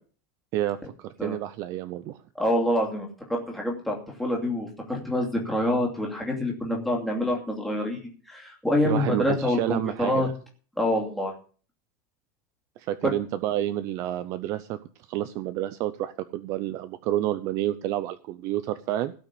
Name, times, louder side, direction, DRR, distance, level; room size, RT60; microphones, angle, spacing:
voice 1, 0.5-2.2 8.8-10.3 12.8-14.8 15.1-19.1, right 13 dB, 35° right, 13 dB, 0.6 m, -29 dB
voice 2, 2.4-8.0 8.3-10.3 10.8-11.3 13.0-13.1, left 1 dB, ahead, -1 dB, 2.6 m, -26 dB
17.0 x 5.9 x 8.4 m, 0.41 s
supercardioid pair, 180°, 9 cm